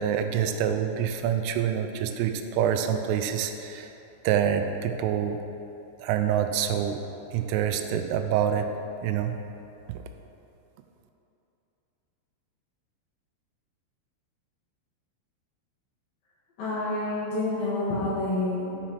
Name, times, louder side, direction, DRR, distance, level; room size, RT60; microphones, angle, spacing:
voice 1, 0.0-3.9 4.2-5.4 6.0-7.0 7.3-8.7 9.0-9.3, right 9 dB, 85° right, 7 dB, 3.1 m, -26 dB
voice 2, 16.6-18.8, left 2 dB, 55° left, -9 dB, 3.2 m, -28 dB
7.3 x 6.3 x 5.8 m, 2.9 s
omnidirectional pair, 5.7 m